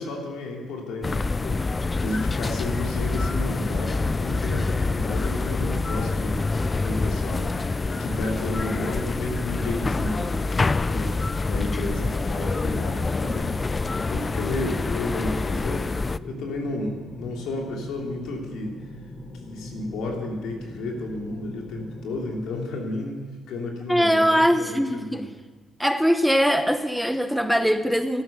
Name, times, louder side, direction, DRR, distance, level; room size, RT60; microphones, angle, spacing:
voice 1, 0.0-6.4 6.7-13.5 13.8-15.9 16.2-18.8 19.4-25.3, left 2 dB, 85° left, 0 dB, 3.0 m, -32 dB
sound 1, 1.0-16.2, left 3 dB, 25° left, 0.4 m, -26 dB
sound 2, 9.5-22.5, left 1 dB, 50° left, 1.6 m, -41 dB
voice 2, 23.9-25.2 25.8-28.2, equal, ahead, 9 dB, 0.8 m, -21 dB
13.0 x 12.5 x 6.8 m, 1.4 s
cardioid pair, 90°, 0 cm